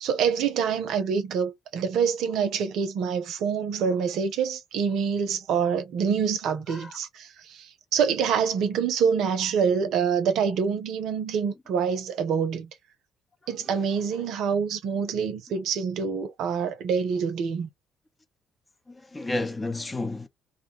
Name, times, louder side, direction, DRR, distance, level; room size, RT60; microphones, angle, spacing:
voice 1, 0.0-7.7 7.9-12.7 13.5-17.7, right 6 dB, 65° right, 0.6 m, -26 dB
voice 2, 18.9-20.3, left 2 dB, 25° left, 0.7 m, -32 dB
2.5 x 2.2 x 2.9 m
hypercardioid pair, 50°, 0 cm